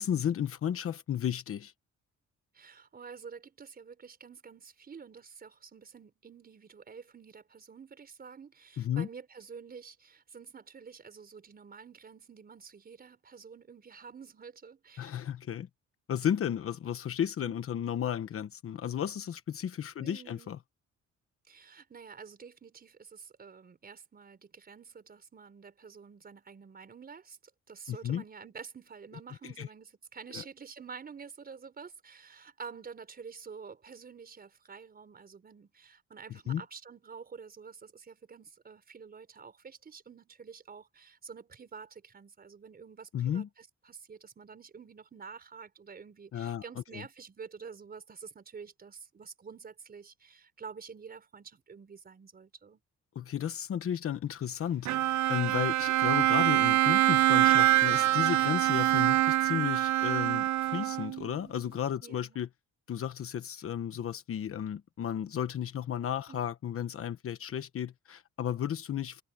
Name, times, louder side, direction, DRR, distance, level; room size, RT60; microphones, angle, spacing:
voice 1, 0.0-1.7 8.8-9.1 15.0-15.7 16.1-20.6 27.9-28.2 29.4-29.7 30.3-30.4 36.3-36.6 43.1-43.5 46.3-46.6 46.9-47.0 53.1-54.9 55.3-62.5 62.9-69.2, left 9 dB, 45° left, 1.1 m, -33 dB
voice 2, 2.5-15.1 17.4-17.6 20.0-20.5 21.5-27.4 27.7-52.8 55.6-55.9 62.0-62.4 66.3-66.4, right 6 dB, 30° right, 5.1 m, -49 dB
Bowed string instrument, 54.9-61.3, right 15 dB, 70° right, 0.5 m, -25 dB
cardioid pair, 180°, 30 cm